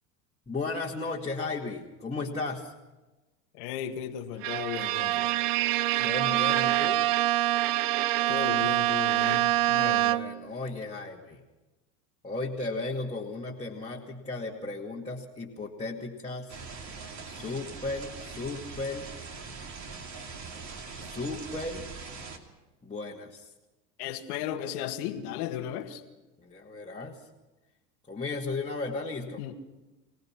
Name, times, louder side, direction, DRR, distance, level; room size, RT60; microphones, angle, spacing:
voice 1, 0.5-2.7 6.0-7.0 9.8-11.4 12.2-16.6 17.2-19.1 21.0-21.9 22.8-23.5 26.4-27.3 28.1-29.4, left 3 dB, 15° left, -4 dB, 2.3 m, -35 dB
voice 2, 3.5-5.3 8.3-10.1 24.0-26.0 29.4-29.6, left 10 dB, 65° left, 7 dB, 2.0 m, -35 dB
Bowed string instrument, 4.4-10.5, right 15 dB, 55° right, 0.8 m, -25 dB
sound 1, 16.5-22.4, right 4 dB, 35° right, 3.0 m, -42 dB
24.5 x 18.0 x 6.0 m, 1.1 s
hypercardioid pair, 85°, 47 cm